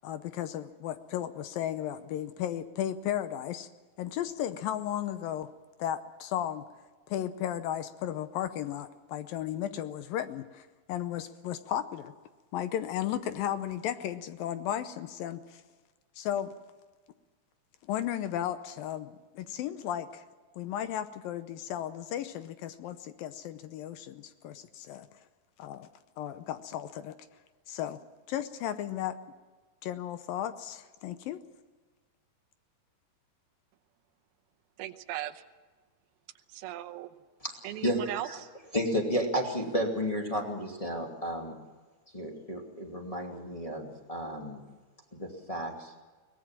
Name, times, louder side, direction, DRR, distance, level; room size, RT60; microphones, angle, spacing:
voice 1, 0.0-3.7 4.0-5.5 5.8-6.6 7.1-12.1 12.5-15.6 16.2-16.5 17.9-20.2 20.6-25.1 25.6-25.9 26.2-27.2 27.7-28.0 28.3-29.2 29.8-31.4, left 11 dB, 75° left, 11 dB, 2.4 m, -35 dB
voice 2, 34.8-35.4 36.5-37.1 37.6-38.5, right 12 dB, 85° right, 8 dB, 2.7 m, -38 dB
voice 3, 37.8-38.4 38.7-41.5 42.1-44.6 45.1-45.9, equal, 10° left, 1 dB, 1.7 m, -32 dB
23.0 x 19.0 x 7.4 m, 1.3 s
omnidirectional pair, 4.5 m